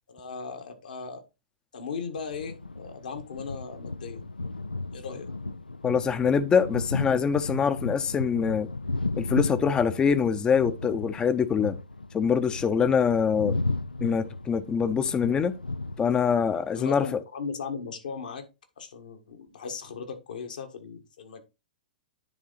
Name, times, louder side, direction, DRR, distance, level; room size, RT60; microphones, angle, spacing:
voice 1, 0.1-1.2 1.7-4.2 4.9-5.3 16.7-18.5 18.8-21.4, left 5 dB, 65° left, 1.6 m, -37 dB
sound 1, 2.2-16.5, left 3 dB, 90° left, 0.4 m, -34 dB
voice 2, 5.8-8.7 9.2-11.8 12.1-13.6 14.0-15.6 16.0-17.2, left 6 dB, 15° left, 0.7 m, -24 dB
10.0 x 3.7 x 4.1 m
figure-of-eight pair, 105°, 5 cm